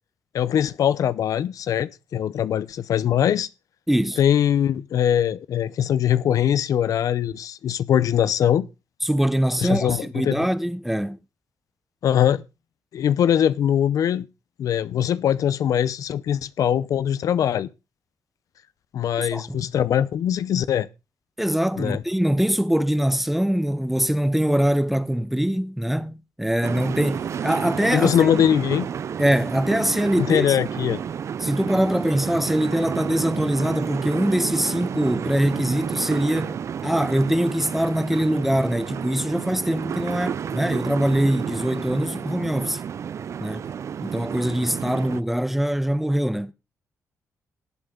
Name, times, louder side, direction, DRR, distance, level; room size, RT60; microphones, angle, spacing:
voice 1, 0.3-3.5 4.2-8.7 9.6-10.4 12.0-12.4 12.9-14.3 14.6-17.7 18.9-20.9 21.8-22.0 27.9-28.9 30.2-31.0, left 9 dB, 70° left, 0.7 m, -22 dB
voice 2, 3.9-4.2 9.0-11.2 19.2-19.6 21.4-28.1 29.2-30.5 31.4-42.8 43.4-43.6 44.0-46.5, equal, 5° right, 1.1 m, -23 dB
sound 1, 26.6-45.2, right 8 dB, 55° right, 0.6 m, -31 dB
18.0 x 7.8 x 3.8 m
cardioid pair, 100°, 6 cm